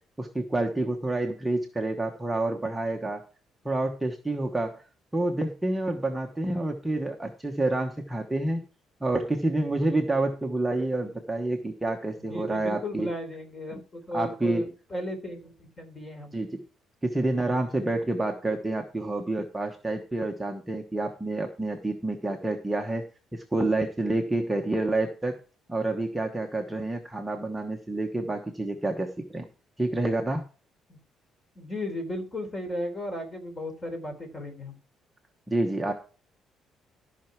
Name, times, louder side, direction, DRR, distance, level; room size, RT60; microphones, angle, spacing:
voice 1, 0.2-3.2 3.6-4.8 5.1-8.6 9.0-13.1 14.1-14.7 16.3-16.6 17.0-23.0 23.3-25.4 25.7-29.5 29.8-30.4 35.5-35.9, right 2 dB, 10° right, 1 dB, 1.1 m, -28 dB
voice 2, 12.2-16.3 30.9-31.0 31.6-34.8, left 1 dB, 20° left, 5 dB, 3.7 m, -35 dB
14.0 x 5.8 x 4.6 m, 0.36 s
cardioid pair, 155°, 0 cm